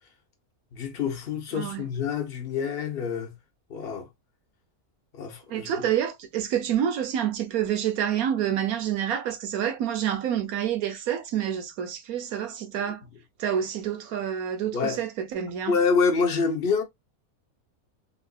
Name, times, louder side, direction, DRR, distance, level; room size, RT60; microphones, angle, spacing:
voice 1, 0.7-3.3 3.7-4.1 5.1-5.9 14.7-15.0 15.7-16.8, left 5 dB, 45° left, 1.1 m, -26 dB
voice 2, 5.5-13.0 13.4-15.8, right 9 dB, 80° right, 1.2 m, -28 dB
3.7 x 2.5 x 2.3 m
omnidirectional pair, 1.5 m